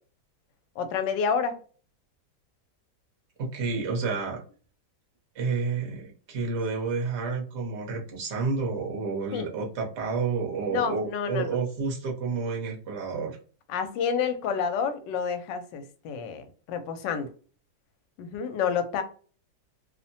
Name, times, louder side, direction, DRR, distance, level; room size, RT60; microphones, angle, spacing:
voice 1, 0.8-1.6 9.3-9.5 10.7-11.6 13.0-13.3 13.7-17.3 18.2-19.0, left 6 dB, 80° left, 1.2 m, -29 dB
voice 2, 3.4-4.4 5.3-13.4, right 4 dB, 50° right, 0.9 m, -30 dB
2.9 x 2.1 x 2.6 m
omnidirectional pair, 1.9 m